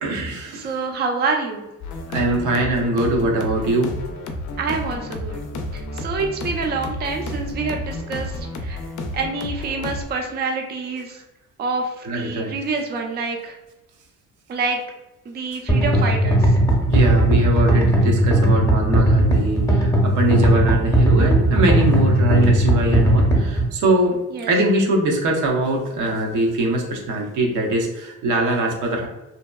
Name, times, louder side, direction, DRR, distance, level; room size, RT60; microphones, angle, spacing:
voice 1, 0.0-0.7 2.1-3.9 12.0-12.6 16.9-24.2 24.5-29.1, right 1 dB, 80° right, 1 dB, 0.7 m, -22 dB
voice 2, 0.5-1.6 4.6-5.4 5.7-8.8 9.1-11.2 11.6-13.5 14.5-14.8 15.3-16.5 24.3-24.5, right 4 dB, 35° right, 2 dB, 0.4 m, -27 dB
sound 1, 1.8-10.0, left 1 dB, 75° left, 0.5 m, -31 dB
sound 2, 15.7-23.6, right 1 dB, 10° left, 0.6 m, -17 dB
2.7 x 2.2 x 2.2 m, 0.97 s
cardioid pair, 90°, 30 cm